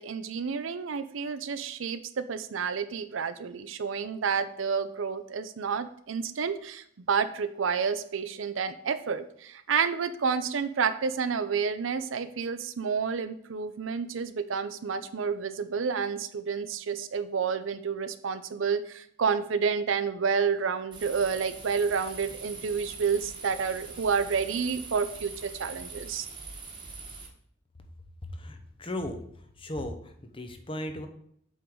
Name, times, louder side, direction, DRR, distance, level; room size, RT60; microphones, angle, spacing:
voice 1, 0.0-26.3, right 6 dB, 75° right, 12 dB, 0.5 m, -30 dB
sound 1, 20.9-27.3, right 4 dB, 25° right, 1.3 m, -43 dB
voice 2, 28.3-29.2 29.6-31.1, left 1 dB, 25° left, 6 dB, 0.8 m, -36 dB
7.9 x 3.8 x 4.6 m, 0.67 s
head